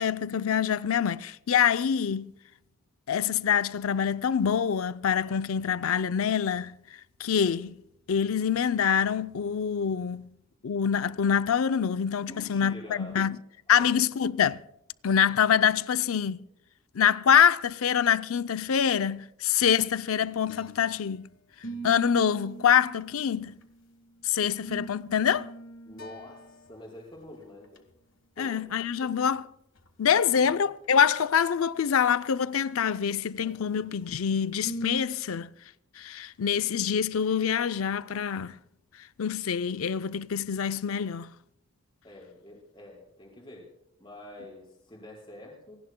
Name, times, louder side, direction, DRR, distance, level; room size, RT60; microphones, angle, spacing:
voice 1, 0.0-2.3 3.1-6.7 7.2-7.8 8.1-10.3 10.6-13.4 13.7-14.6 15.0-16.4 16.9-21.3 21.8-23.6 24.2-25.5 28.4-29.4 30.0-35.5 36.0-38.6 39.2-41.3, left 8 dB, 80° left, 0.5 m, -25 dB
voice 2, 12.3-13.2 13.7-13.9 25.8-27.8 28.4-28.6 29.0-29.2 30.3-30.4 42.0-43.7 44.0-45.8, left 1 dB, 25° left, 4.9 m, -46 dB
sound 1, 20.3-21.2 21.6-23.8 24.4-26.9 27.2-27.3 27.6-27.8 29.2-29.3 29.8-29.9 33.4-34.1 34.6-35.0, right 2 dB, 65° left, 1.4 m, -41 dB
27.0 x 17.5 x 2.2 m
head